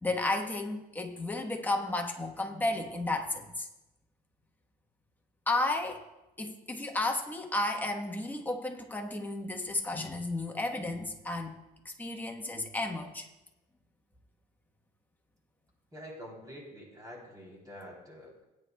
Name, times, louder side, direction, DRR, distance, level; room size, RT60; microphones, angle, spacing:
voice 1, 0.0-3.7 5.5-6.0 6.4-11.5 11.8-13.3, left 2 dB, 10° left, 2 dB, 1.1 m, -33 dB
voice 2, 15.9-18.4, equal, 20° right, -1 dB, 3.1 m, -47 dB
17.0 x 9.5 x 2.3 m, 1.0 s
cardioid pair, 110°, 17 cm